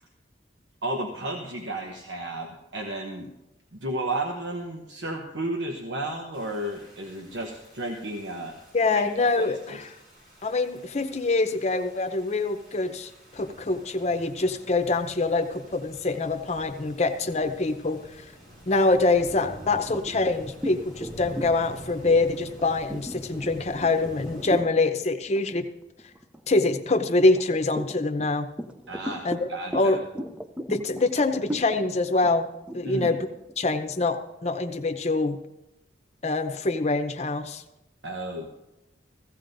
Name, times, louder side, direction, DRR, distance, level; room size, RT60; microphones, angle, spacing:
voice 1, 0.8-3.3 3.7-8.6 8.9-9.0 9.4-9.9 28.9-30.0 32.8-33.2 38.0-38.5, right 1 dB, 90° right, 1 dB, 1.0 m, -33 dB
sound 1, 6.3-24.6, equal, 55° right, 5.6 m, -47 dB
voice 2, 8.7-9.9 10.4-18.0 18.7-25.7 26.5-28.5 29.2-29.4 29.7-30.0 30.7-32.5 32.7-33.2 33.6-35.4 36.2-37.6, left 3 dB, 40° left, 6 dB, 0.7 m, -25 dB
sound 2, 19.7-24.9 25.3-25.6 26.0-26.8 27.3-34.1, equal, 5° right, 0.4 m, -37 dB
15.5 x 15.5 x 2.6 m, 0.92 s
head